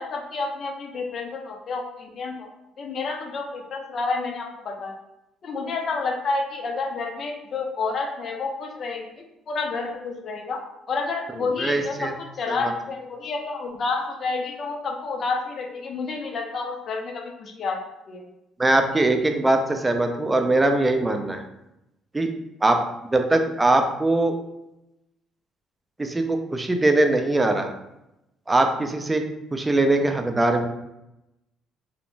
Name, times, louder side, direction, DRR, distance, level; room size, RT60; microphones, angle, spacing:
voice 1, 0.0-2.5 2.8-4.9 5.4-10.6 10.9-17.8 18.1-18.2, left 4 dB, 50° left, 3 dB, 0.4 m, -29 dB
voice 2, 11.6-12.1 12.5-12.6 18.6-21.4 22.1-22.3 22.6-22.8 23.1-24.4 26.0-27.7 28.5-29.2 29.5-30.7, right 2 dB, 15° right, 5 dB, 0.4 m, -21 dB
2.5 x 2.0 x 3.0 m, 0.90 s
cardioid pair, 90°, 0 cm